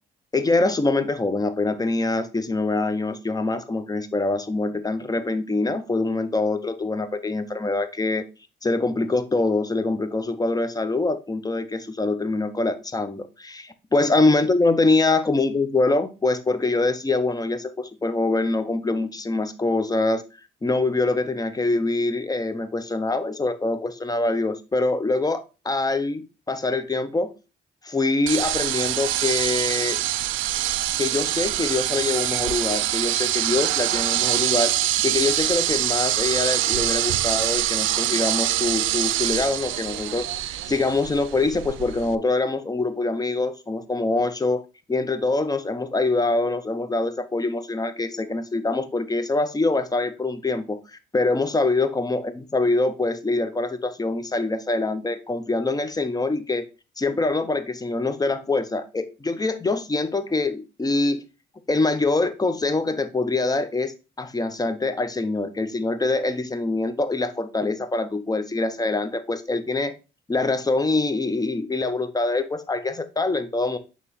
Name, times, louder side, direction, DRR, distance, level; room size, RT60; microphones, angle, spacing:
voice 1, 0.3-8.2 8.6-20.2 20.6-27.3 27.8-30.0 31.0-40.3 40.7-44.6 44.9-50.8 51.1-56.6 57.0-61.2 61.7-69.9 70.3-73.8, left 3 dB, 20° left, 0.7 m, -24 dB
sound 1, 28.3-42.1, right 13 dB, 80° right, 0.4 m, -24 dB
8.2 x 3.1 x 4.0 m
cardioid pair, 90°, 20 cm